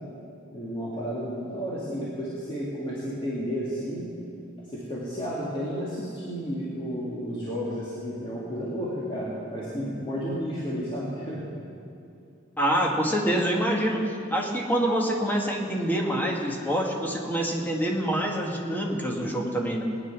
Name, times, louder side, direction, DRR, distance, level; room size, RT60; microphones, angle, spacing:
voice 1, 0.5-4.1 4.7-11.5, equal, 25° left, -7 dB, 2.2 m, -32 dB
voice 2, 12.6-19.8, right 1 dB, 10° left, 0 dB, 1.7 m, -26 dB
19.5 x 10.0 x 6.1 m, 2.6 s
head